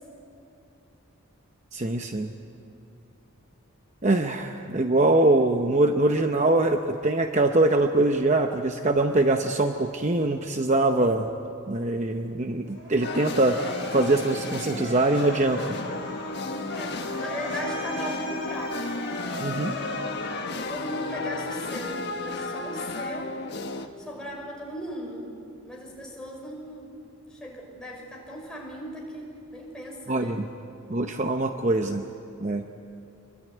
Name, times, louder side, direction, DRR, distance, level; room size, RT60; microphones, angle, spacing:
voice 1, 1.7-2.3 4.0-11.3 11.7-15.8 19.4-19.7 30.1-30.5 30.9-32.0 32.4-32.6, right 2 dB, 30° right, 5 dB, 0.8 m, -23 dB
Motor vehicle (road) / Siren, 12.6-21.2, right 1 dB, 50° right, 6.3 m, -38 dB
sound 1, 13.0-23.9, left 3 dB, 50° left, 1.4 m, -33 dB
voice 2, 16.7-19.1 20.5-23.4 24.0-25.3 25.6-26.9 27.3-30.4, equal, 5° left, -2 dB, 5.5 m, -37 dB
26.0 x 22.5 x 9.3 m, 2.7 s
head